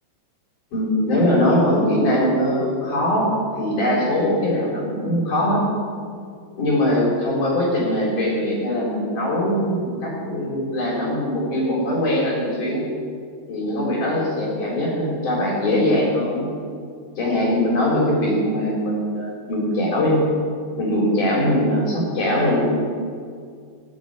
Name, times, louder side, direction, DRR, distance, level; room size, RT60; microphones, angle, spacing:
voice 1, 0.7-5.7 6.6-12.9 13.5-16.5 17.2-20.2 20.8-22.6, left 1 dB, 60° left, -3 dB, 5.3 m, -21 dB
16.5 x 7.7 x 8.1 m, 2.1 s
omnidirectional pair, 4.1 m